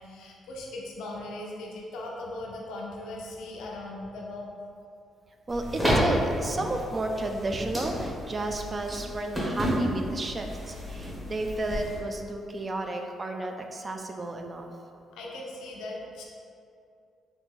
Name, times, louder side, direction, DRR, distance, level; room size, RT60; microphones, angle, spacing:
voice 1, 0.0-4.5 15.1-16.2, left 2 dB, 85° left, -2 dB, 0.5 m, -39 dB
sound 1, 5.5-12.0, equal, 15° right, 1.0 m, -31 dB
voice 2, 5.5-14.7, right 2 dB, 30° right, 4 dB, 0.3 m, -32 dB
3.2 x 2.5 x 3.6 m, 2.4 s
cardioid pair, 90°, 0 cm